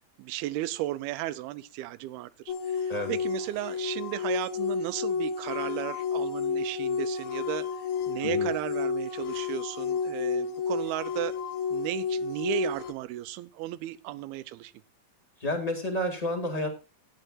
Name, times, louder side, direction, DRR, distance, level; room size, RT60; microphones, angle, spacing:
voice 1, 0.2-7.7 8.1-11.3 11.7-14.7, right 15 dB, 80° right, 2.5 m, -35 dB
sound 1, 2.5-12.9, left 5 dB, 75° left, 2.8 m, -31 dB
voice 2, 15.4-16.7, left 1 dB, 20° left, 1.2 m, -30 dB
15.5 x 9.7 x 2.4 m
omnidirectional pair, 4.5 m